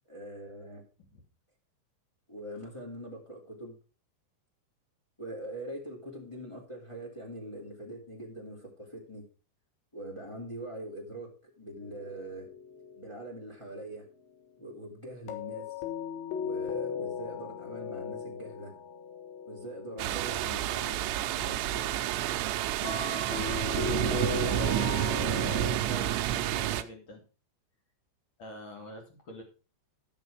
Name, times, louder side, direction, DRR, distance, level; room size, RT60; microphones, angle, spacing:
voice 1, 0.1-0.8 2.3-3.7 5.2-9.2 9.9-12.5 12.9-14.0 14.6-15.7 16.4-18.7 19.4-22.0 23.6-24.2, right 1 dB, 15° left, -1 dB, 1.2 m, -43 dB
sound 1, 11.8-13.2 15.3-20.9 22.8-25.8, left 7 dB, 75° left, 3.7 m, -37 dB
sound 2, 20.0-26.8, right 13 dB, 80° right, 2.9 m, -29 dB
voice 2, 25.9-27.2 28.4-29.4, left 2 dB, 35° left, 2 dB, 2.4 m, -45 dB
13.0 x 6.3 x 5.0 m, 0.34 s
omnidirectional pair, 5.4 m